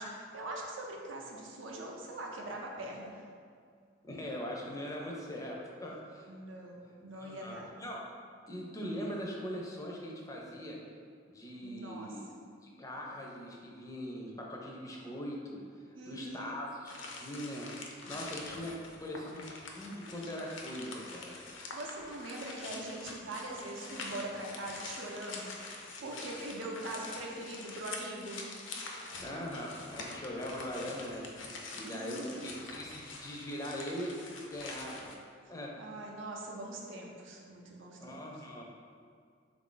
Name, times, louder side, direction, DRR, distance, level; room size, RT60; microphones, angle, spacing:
voice 1, 0.0-3.2 6.3-7.7 11.6-12.1 15.9-16.6 21.7-28.5 31.9-32.6 35.8-38.2, right 1 dB, 80° right, -1 dB, 0.6 m, -42 dB
voice 2, 4.0-6.3 7.1-8.0 8.5-10.8 11.3-12.3 12.6-15.6 16.0-17.7 18.1-19.5 19.7-21.4 29.2-31.3 31.7-34.1 34.5-35.1 35.5-35.7 38.0-38.6, equal, 15° left, -2 dB, 0.4 m, -41 dB
sound 1, 16.9-35.1, left 3 dB, 75° left, 0.5 m, -45 dB
3.6 x 2.4 x 3.7 m, 2.2 s
head